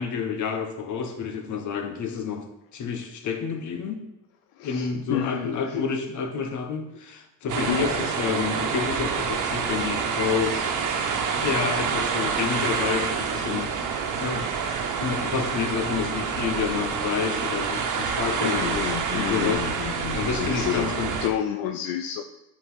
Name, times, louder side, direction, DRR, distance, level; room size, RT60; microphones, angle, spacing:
voice 1, 0.0-2.4 2.7-4.0 4.6-10.6 11.4-14.5 15.0-19.7 20.1-21.1, left 6 dB, 60° left, 5 dB, 1.4 m, -29 dB
voice 2, 4.5-5.9 7.7-8.1 18.4-21.0 21.2-22.2, left 10 dB, 85° left, 6 dB, 0.6 m, -30 dB
sound 1, 7.5-21.3, right 6 dB, 60° right, 1.3 m, -27 dB
8.8 x 4.4 x 5.7 m, 0.92 s
cardioid pair, 95°, 34 cm